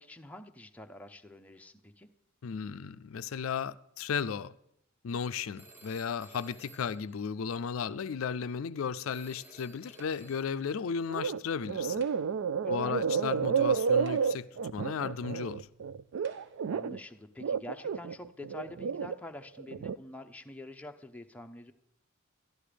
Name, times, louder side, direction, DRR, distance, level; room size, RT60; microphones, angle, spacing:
voice 1, 0.0-2.1 12.6-13.0 16.7-21.7, left 1 dB, 5° left, 0.6 m, -46 dB
voice 2, 2.4-4.5 5.0-12.0 12.7-14.5 14.7-15.7, left 6 dB, 75° left, 0.4 m, -35 dB
Telephone, 5.6-7.9 9.1-10.8, right 1 dB, 10° right, 1.2 m, -57 dB
sound 1, 10.0-10.5 11.9-12.5 13.4-13.5 13.9-14.6 15.5-15.6 16.2-16.8, right 3 dB, 55° right, 1.1 m, -55 dB
sound 2, 11.1-11.4 11.7-17.0 17.4-19.2 19.6-20.0, right 6 dB, 75° right, 0.4 m, -30 dB
12.5 x 11.5 x 5.0 m
head